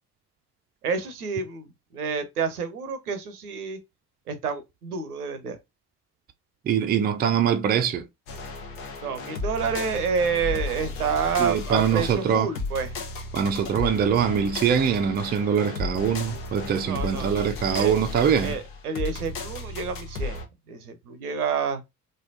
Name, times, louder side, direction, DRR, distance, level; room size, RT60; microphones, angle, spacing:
voice 1, 0.8-3.8 4.3-5.6 9.0-12.9 16.9-17.9 18.4-20.4 20.7-21.8, right 6 dB, 80° right, 0.7 m, -29 dB
voice 2, 6.7-8.1 11.4-12.5 13.3-18.6, right 8 dB, 20° right, 0.5 m, -23 dB
sound 1, 8.3-20.5, left 3 dB, 60° left, 1.0 m, -34 dB
3.8 x 3.2 x 2.6 m
figure-of-eight pair, 55°, 45 cm